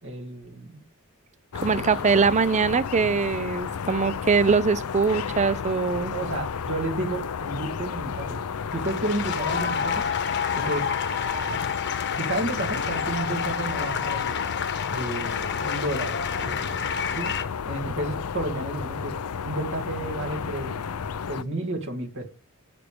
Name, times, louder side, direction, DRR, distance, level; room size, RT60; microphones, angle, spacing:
voice 1, 0.0-0.8 6.0-8.4 8.7-10.1 10.5-10.9 11.5-11.6 12.2-14.4 14.9-17.3 17.6-19.2 19.4-20.8 21.3-22.2, right 2 dB, 60° right, 2.3 m, -32 dB
sound 1, 1.5-21.4, left 6 dB, 85° left, 0.5 m, -32 dB
voice 2, 1.6-6.1, right 5 dB, 35° right, 0.5 m, -22 dB
sound 2, 8.6-17.4, left 7 dB, 55° left, 1.2 m, -29 dB
11.0 x 8.8 x 3.4 m
head